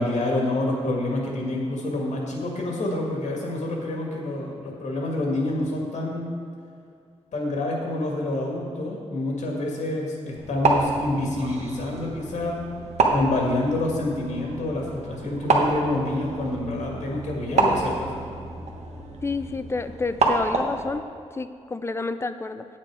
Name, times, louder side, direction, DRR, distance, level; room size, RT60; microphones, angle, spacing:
voice 1, 0.0-6.3 7.3-12.6 13.1-18.4, left 2 dB, 85° left, -1 dB, 1.9 m, -27 dB
sound 1, 10.4-20.9, right 3 dB, 70° right, 1.1 m, -28 dB
voice 2, 19.2-21.0 21.3-22.6, left 3 dB, 20° left, 10 dB, 0.3 m, -29 dB
8.9 x 8.4 x 4.8 m, 2.3 s
wide cardioid pair, 180°, 12 cm